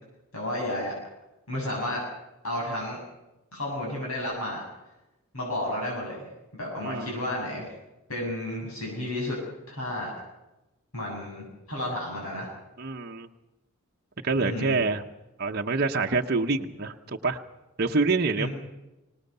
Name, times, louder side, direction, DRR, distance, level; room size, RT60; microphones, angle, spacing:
voice 1, 0.3-0.9 1.5-2.0 2.4-3.0 3.5-4.6 5.3-7.7 8.1-9.4 9.7-10.1 10.9-12.5 14.4-14.8 18.4-18.5, left 1 dB, 75° left, -2 dB, 7.3 m, -32 dB
voice 2, 6.8-7.3 12.8-13.3 14.2-15.0 15.4-17.4 17.8-18.5, right 3 dB, 45° right, 3 dB, 0.9 m, -26 dB
24.5 x 19.0 x 6.8 m, 0.99 s
head